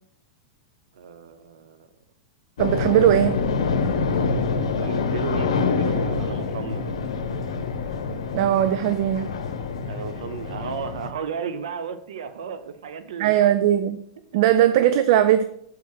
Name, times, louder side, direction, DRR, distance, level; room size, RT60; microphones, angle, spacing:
voice 1, 0.9-1.9 2.9-3.1 4.8-7.0 9.9-13.4 14.3-14.4 14.7-14.8, right 6 dB, 80° right, 0.8 m, -34 dB
sound 1, 2.6-11.1, left 4 dB, 85° left, 0.9 m, -26 dB
voice 2, 2.6-3.4 8.3-9.3 13.2-14.0 14.3-15.4, right 11 dB, 60° right, 0.4 m, -19 dB
5.4 x 4.8 x 5.9 m
hypercardioid pair, 120°, 3 cm